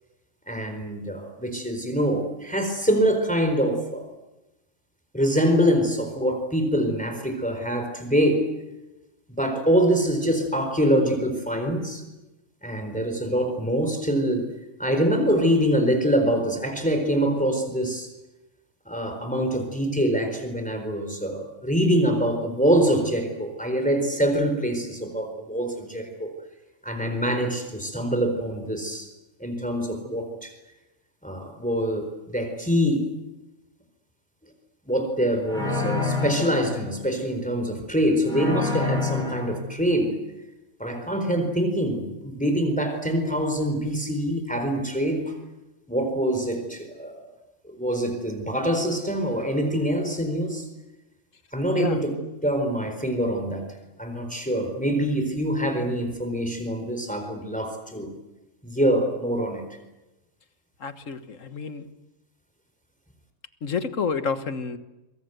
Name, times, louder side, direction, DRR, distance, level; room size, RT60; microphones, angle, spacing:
voice 1, 0.5-4.0 5.1-8.4 9.3-12.0 12.6-14.5 14.8-18.1 18.9-26.3 26.8-29.1 29.4-30.5 31.2-33.0 34.9-40.2 40.8-45.3 45.9-47.2 47.6-50.7 51.5-52.1 52.4-53.7 54.0-58.1 58.6-59.6, equal, 5° left, 5 dB, 4.2 m, -24 dB
sound 1, 35.5-36.8 38.3-39.6, left 3 dB, 35° right, 6.3 m, -27 dB
voice 2, 60.8-61.9 63.6-64.8, left 6 dB, 85° left, 10 dB, 1.8 m, -29 dB
26.5 x 22.5 x 8.1 m, 1.0 s
omnidirectional pair, 1.3 m